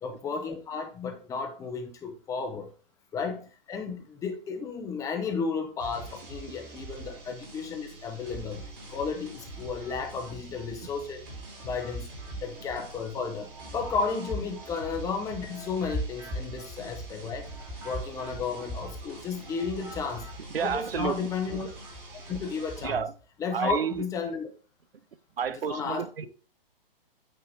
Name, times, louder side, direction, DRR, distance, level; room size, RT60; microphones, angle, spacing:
voice 1, 0.0-2.7 3.1-8.6 8.9-11.2 11.6-12.1 12.4-13.5 13.7-17.5 17.8-20.3 20.6-21.7 22.3-23.0 23.4-24.5 25.7-26.0, left 5 dB, 10° left, 0.8 m, -33 dB
sound 1, 5.8-22.9, right 2 dB, 65° right, 2.8 m, -44 dB
sound 2, 8.2-9.0 9.4-11.0 11.4-21.1 21.4-24.0, equal, 10° right, 1.4 m, -42 dB
voice 2, 16.8-17.3 19.4-19.5 20.5-21.3 22.8-23.1 23.5-24.1 25.4-26.3, right 8 dB, 80° right, 0.7 m, -32 dB
8.9 x 3.0 x 3.9 m
hypercardioid pair, 135°, 29 cm